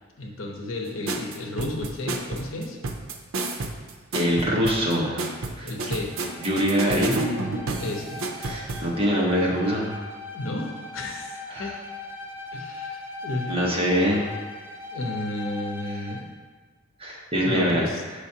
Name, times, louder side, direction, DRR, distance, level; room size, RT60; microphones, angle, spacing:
voice 1, 0.2-2.8 5.6-6.1 7.8-8.2 10.3-11.7 12.5-13.6 14.9-16.3 17.4-18.0, left 1 dB, 80° left, 1 dB, 0.8 m, -32 dB
sound 1, 1.1-8.9, right 2 dB, 90° right, 0.6 m, -31 dB
voice 2, 4.1-5.7 6.4-7.2 8.4-10.0 11.5-11.7 13.5-14.3 17.0-17.8, equal, 30° right, -4 dB, 1.1 m, -24 dB
Bowed string instrument, 5.9-16.3, left 3 dB, 10° right, 0.5 m, -39 dB
6.9 x 5.0 x 2.8 m, 1.3 s
head